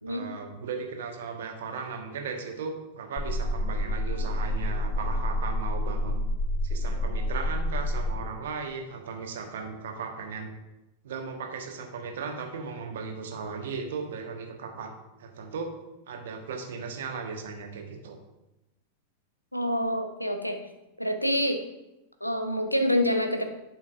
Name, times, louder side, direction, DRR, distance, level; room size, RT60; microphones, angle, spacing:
voice 1, 0.1-6.2 6.6-10.5 11.0-14.9 15.2-15.7 16.1-18.2, right 5 dB, 60° right, 3 dB, 1.2 m, -36 dB
sound 1, 3.2-8.2, left 1 dB, 25° left, 1.0 m, -28 dB
voice 2, 19.5-20.6 21.0-21.6 22.2-23.4, equal, 90° left, 5 dB, 0.8 m, -26 dB
11.0 x 6.0 x 2.5 m, 0.96 s
figure-of-eight pair, 90°, 0 cm